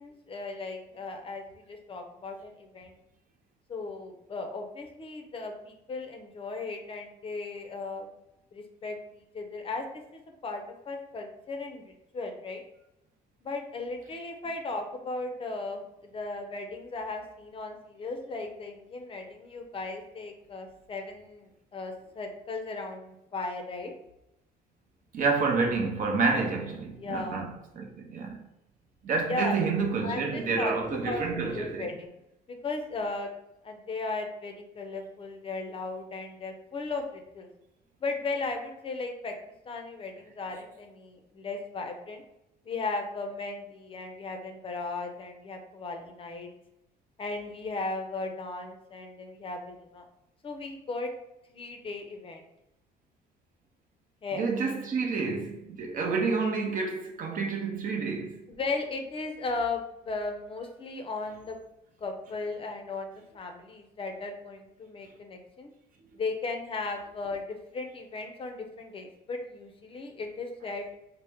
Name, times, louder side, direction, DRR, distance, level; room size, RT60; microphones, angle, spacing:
voice 1, 0.0-2.9 3.7-8.1 8.5-12.6 13.4-23.9 27.0-27.5 29.3-29.6 30.0-32.1 32.5-33.3 33.6-37.5 38.0-39.3 39.7-42.2 42.7-46.5 47.2-50.0 50.4-51.1 51.5-52.4 54.2-54.5 58.5-61.6 62.0-65.7 66.1-67.5 67.7-70.9, left 3 dB, 35° left, 0.5 m, -36 dB
voice 2, 25.1-28.4 29.0-31.9 54.3-58.4, right 4 dB, 55° right, 0.7 m, -29 dB
4.1 x 2.0 x 3.4 m
cardioid pair, 110°, 17 cm